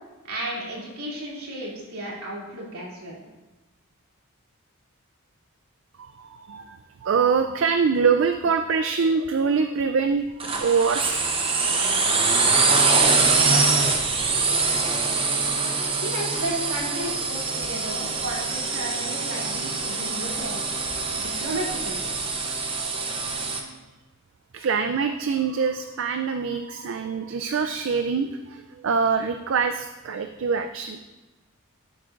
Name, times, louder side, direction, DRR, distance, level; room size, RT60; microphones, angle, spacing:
voice 1, 0.2-3.2 16.0-20.7 21.1-22.0, right 1 dB, 85° right, -4 dB, 2.7 m, -33 dB
voice 2, 6.0-11.2 14.5-14.6 24.5-31.0, right 5 dB, 60° right, 8 dB, 0.4 m, -24 dB
sound 1, 10.4-23.6, right 4 dB, 25° right, 0.7 m, -24 dB
11.5 x 7.8 x 2.5 m, 1.1 s
head